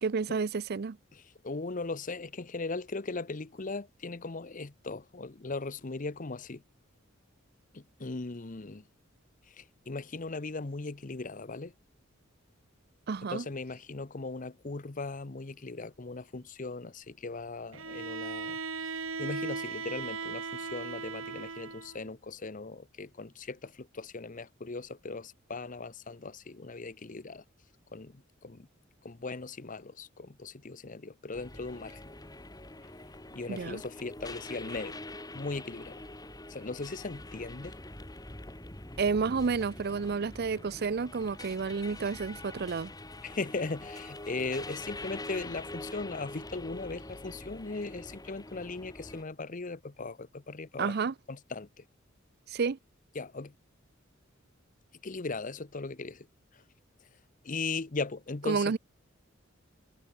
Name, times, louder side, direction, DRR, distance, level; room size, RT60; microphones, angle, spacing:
voice 1, 0.0-1.0 13.1-13.4 33.5-33.8 39.0-42.9 50.8-51.1 52.5-52.8 58.5-58.8, right 5 dB, 50° right, 0.5 m, -30 dB
voice 2, 1.1-6.6 7.7-8.8 9.5-11.7 13.3-18.9 19.2-27.4 27.9-28.7 29.0-32.0 33.3-35.0 35.3-36.0 36.5-37.8 43.2-51.0 51.3-51.8 53.1-53.5 55.0-56.3 56.5-56.6 57.4-58.7, left 3 dB, 40° left, 0.8 m, -38 dB
Bowed string instrument, 17.7-22.0, right 4 dB, 80° right, 3.9 m, -37 dB
sound 1, 31.3-49.2, left 2 dB, 20° left, 3.1 m, -45 dB
head